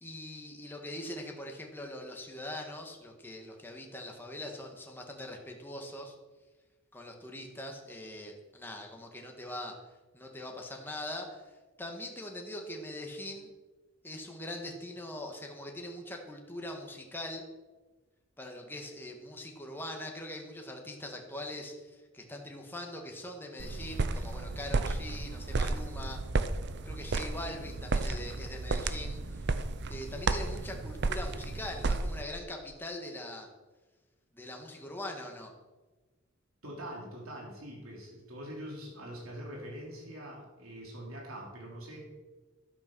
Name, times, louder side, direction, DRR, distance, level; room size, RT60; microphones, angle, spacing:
voice 1, 0.0-6.1 6.9-9.7 10.1-11.4 11.8-13.5 14.0-17.4 18.4-26.2 26.8-33.5 34.3-35.5, left 1 dB, 10° left, 1 dB, 1.7 m, -42 dB
sound 1, 23.6-32.2, right 3 dB, 55° right, 0.7 m, -33 dB
voice 2, 36.6-42.0, equal, 85° right, -2 dB, 3.5 m, -43 dB
12.0 x 9.0 x 6.2 m, 1.2 s
head